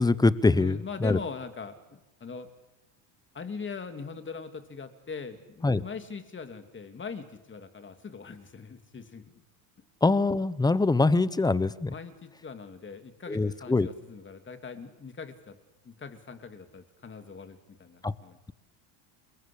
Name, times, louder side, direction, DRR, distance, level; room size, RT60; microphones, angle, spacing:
voice 1, 0.0-1.2 5.6-5.8 10.0-11.9 13.3-13.9 18.0-18.1, left 3 dB, 10° left, 17 dB, 0.9 m, -24 dB
voice 2, 0.5-2.5 3.3-9.4 11.6-15.5 15.8-18.4, left 5 dB, 25° left, 7 dB, 3.0 m, -41 dB
28.5 x 22.0 x 8.7 m, 0.95 s
supercardioid pair, 115°, 49 cm